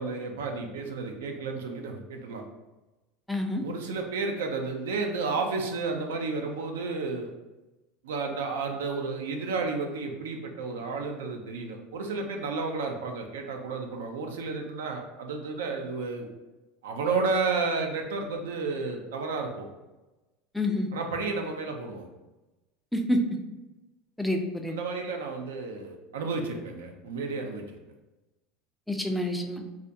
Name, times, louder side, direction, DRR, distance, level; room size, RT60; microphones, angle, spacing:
voice 1, 0.0-2.4 3.6-7.3 8.0-16.3 16.8-19.7 20.9-22.1 24.7-27.8, right 4 dB, 85° right, 3 dB, 0.3 m, -32 dB
voice 2, 3.3-3.6 20.5-20.9 22.9-23.2 24.2-24.8 28.9-29.6, left 1 dB, ahead, 3 dB, 0.3 m, -28 dB
2.3 x 2.1 x 2.6 m, 1.1 s
hypercardioid pair, 90°, 0 cm